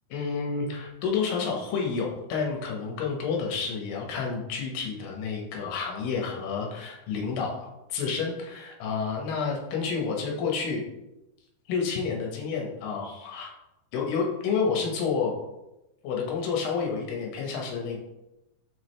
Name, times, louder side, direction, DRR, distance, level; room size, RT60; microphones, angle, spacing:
voice 1, 0.1-10.8 11.7-13.5 13.9-15.3 16.0-18.0, left 5 dB, 80° left, 0 dB, 2.7 m, -29 dB
6.1 x 4.8 x 3.2 m, 0.94 s
omnidirectional pair, 4.0 m